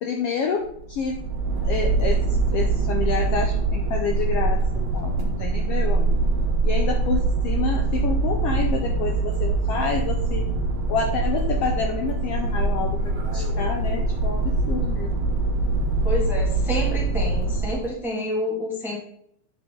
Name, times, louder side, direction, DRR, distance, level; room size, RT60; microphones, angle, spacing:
voice 1, 0.0-1.2 1.6-6.2 6.6-10.5 10.9-15.2, left 5 dB, 90° left, 3 dB, 1.3 m, -28 dB
sound 1, 0.6-17.9, right 3 dB, 50° right, 1.9 m, -23 dB
voice 2, 16.0-19.0, left 1 dB, ahead, -2 dB, 0.9 m, -29 dB
8.5 x 5.3 x 3.7 m, 0.67 s
omnidirectional pair, 3.6 m